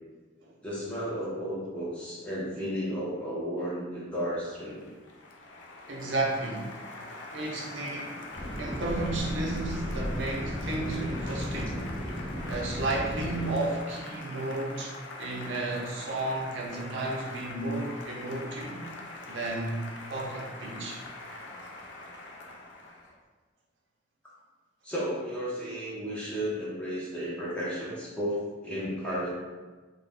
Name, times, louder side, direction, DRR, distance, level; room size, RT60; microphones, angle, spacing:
voice 1, 0.6-4.9 7.0-7.1 24.8-29.3, equal, 5° left, -8 dB, 0.6 m, -33 dB
Applause, 4.3-23.2, left 2 dB, 70° left, 0.4 m, -43 dB
voice 2, 5.9-6.7 7.3-8.3 8.6-11.8 12.5-14.9 15.2-18.8 19.3-21.0, right 2 dB, 75° right, -2 dB, 0.5 m, -33 dB
sound 1, 8.3-13.5, equal, 35° left, 1.0 m, -35 dB
2.4 x 2.1 x 3.3 m, 1.3 s
head